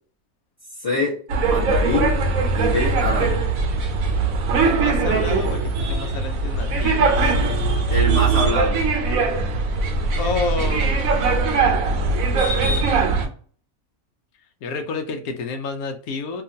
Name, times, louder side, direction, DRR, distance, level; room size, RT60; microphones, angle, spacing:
voice 1, 0.8-2.2 2.5-3.4 7.9-8.8, left 2 dB, 30° left, -7 dB, 0.9 m, -24 dB
sound 1, 1.3-13.3, right 4 dB, 75° right, 1.1 m, -21 dB
voice 2, 4.6-7.3 10.2-13.0 14.6-16.4, left 4 dB, 85° left, 6 dB, 1.1 m, -30 dB
2.9 x 2.3 x 2.6 m, 0.44 s
omnidirectional pair, 1.5 m